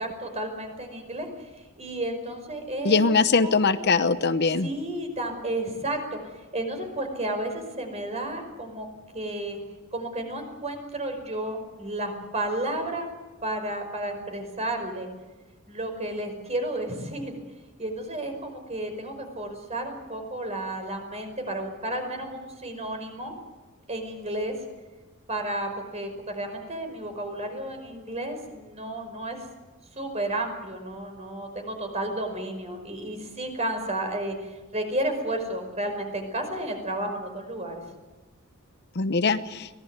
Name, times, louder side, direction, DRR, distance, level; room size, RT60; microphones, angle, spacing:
voice 1, 0.0-1.5 1.8-3.8 4.6-8.9 9.1-9.6 9.9-13.1 13.4-15.1 15.7-17.4 17.8-23.3 23.9-24.5 25.3-29.5 30.0-37.8, right 1 dB, 30° right, 5 dB, 5.4 m, -32 dB
voice 2, 2.8-4.7 38.9-39.7, left 4 dB, 50° left, 11 dB, 0.9 m, -22 dB
24.0 x 18.5 x 9.7 m, 1.2 s
head